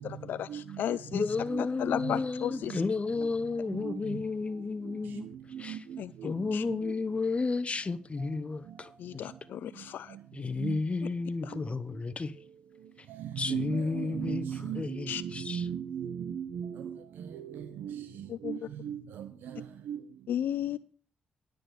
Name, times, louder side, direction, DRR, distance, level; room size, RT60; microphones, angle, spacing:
voice 1, 0.0-1.3 1.6-2.8 6.0-6.6 9.0-10.2 11.4-11.6 15.1-15.2 18.3-18.6 20.3-20.8, left 10 dB, 80° left, 0.4 m, -34 dB
voice 2, 1.1-5.3 5.6-5.8 6.2-9.3 10.3-12.3 13.4-14.4 14.7-15.6, left 4 dB, 40° left, 0.9 m, -32 dB
voice 3, 13.5-16.7 17.8-18.0 18.4-18.6 18.8-19.3 19.9-20.0, right 9 dB, 85° right, 0.8 m, -36 dB
10.0 x 6.6 x 6.8 m
cardioid pair, 60°, 3 cm